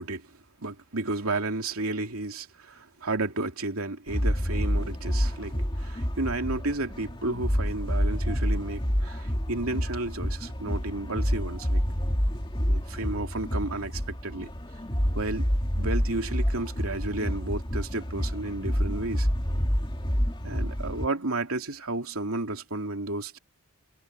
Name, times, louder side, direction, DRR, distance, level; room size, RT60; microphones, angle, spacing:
voice 1, 0.0-11.8 12.6-14.5 15.1-15.5 15.8-19.3 20.4-23.4, right 2 dB, 80° right, 2.8 m, -32 dB
sound 1, 4.1-21.1, equal, 20° left, 2.3 m, -28 dB
head